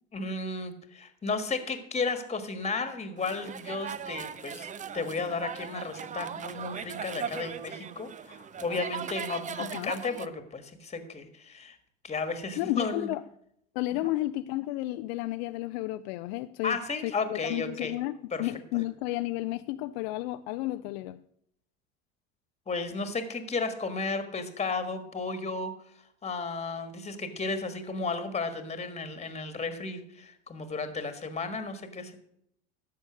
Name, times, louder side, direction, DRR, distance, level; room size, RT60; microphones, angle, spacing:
voice 1, 0.1-4.7 4.9-11.8 12.0-13.1 14.0-14.1 16.6-17.9 18.3-18.5 22.7-25.7 26.2-32.2, left 4 dB, 20° left, 1.6 m, -33 dB
sound 1, 3.2-10.3, right 7 dB, 20° right, 0.5 m, -39 dB
voice 2, 9.6-9.9 12.6-13.2 13.7-16.8 17.0-21.2, left 17 dB, 60° left, 0.6 m, -32 dB
11.5 x 7.1 x 6.3 m
hypercardioid pair, 80°, 36 cm